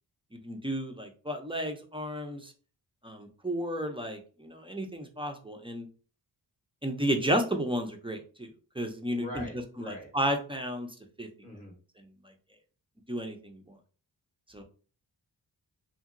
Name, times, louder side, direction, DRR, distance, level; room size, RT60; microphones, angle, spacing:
voice 1, 0.3-2.5 3.0-5.9 6.8-8.5 8.8-9.4 9.8-10.9 11.2-11.3 13.1-13.6 14.5-14.6, equal, 10° right, 4 dB, 0.4 m, -32 dB
voice 2, 9.1-10.1 11.4-11.7, equal, 20° left, 2 dB, 0.8 m, -42 dB
2.8 x 2.7 x 2.5 m, 0.38 s
wide cardioid pair, 70°, 46 cm